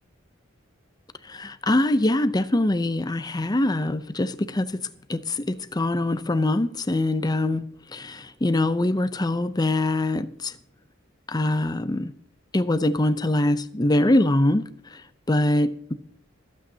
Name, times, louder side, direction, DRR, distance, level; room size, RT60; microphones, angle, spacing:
voice 1, 1.3-4.7 5.1-7.6 7.9-10.5 11.3-12.1 12.5-14.6 14.9-15.0 15.3-16.0, left 1 dB, 20° left, 0.6 m, -23 dB
26.0 x 8.7 x 2.8 m
head